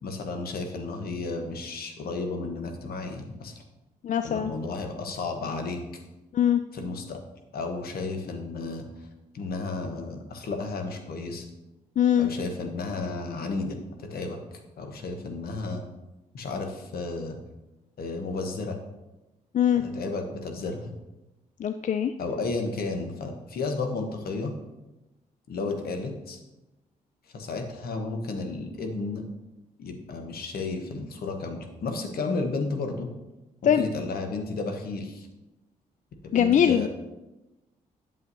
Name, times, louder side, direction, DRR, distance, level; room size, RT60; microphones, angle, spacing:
voice 1, 0.0-3.5 4.2-5.8 6.7-7.2 7.5-9.1 9.3-11.5 12.2-14.4 14.8-15.8 16.3-17.4 18.0-18.8 19.8-20.9 22.2-24.5 25.5-26.4 27.3-29.2 29.8-33.1 33.6-35.3 36.2-36.9, left 3 dB, 70° left, 4 dB, 1.1 m, -33 dB
voice 2, 4.0-4.5 6.3-6.6 12.0-12.3 19.5-19.8 21.6-22.1 33.6-33.9 36.3-36.9, left 9 dB, 50° left, 9 dB, 0.4 m, -22 dB
8.1 x 7.3 x 2.8 m, 1.0 s
supercardioid pair, 50°, 17 cm